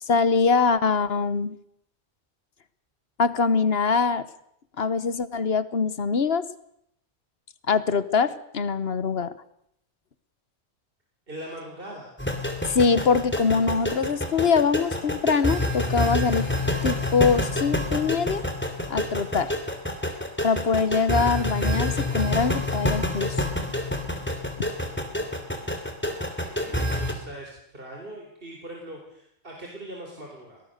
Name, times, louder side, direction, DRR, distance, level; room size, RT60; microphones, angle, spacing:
voice 1, 0.0-1.6 3.2-4.3 4.8-6.4 7.7-9.3 12.7-16.5 16.8-18.4 18.9-19.5 20.4-23.4, left 5 dB, 65° left, 14 dB, 1.3 m, -23 dB
voice 2, 11.3-12.1 26.2-30.6, right 1 dB, 55° right, 0 dB, 4.0 m, -41 dB
sound 1, 12.2-27.1, left 1 dB, 10° left, 3.0 m, -27 dB
23.0 x 18.5 x 6.6 m, 0.73 s
omnidirectional pair, 1.1 m